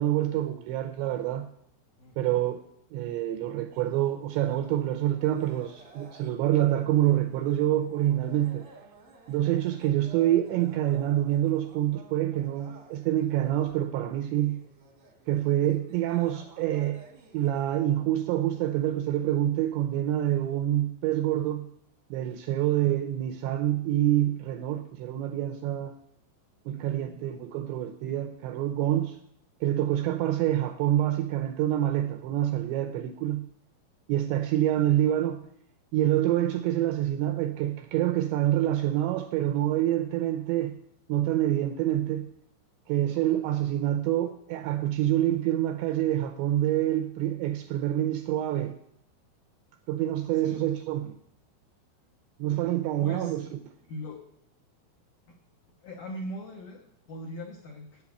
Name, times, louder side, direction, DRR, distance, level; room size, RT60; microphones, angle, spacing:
voice 1, 0.0-1.5 2.2-2.6 2.9-8.7 9.3-14.6 15.3-17.0 17.3-21.7 22.1-25.9 26.7-29.2 29.6-33.5 34.1-35.4 35.9-40.8 41.1-42.3 42.9-48.8 49.9-51.2 52.4-53.5, right 13 dB, 85° right, 6 dB, 2.6 m, -26 dB
voice 2, 2.0-2.4 26.7-27.1 50.3-50.6 53.0-53.4 53.8-54.3 55.3-55.4 55.8-58.0, equal, 80° left, 2 dB, 1.9 m, -41 dB
sound 1, 3.7-17.8, right 3 dB, 65° right, 1.3 m, -53 dB
10.0 x 8.4 x 8.5 m, 0.73 s
omnidirectional pair, 5.9 m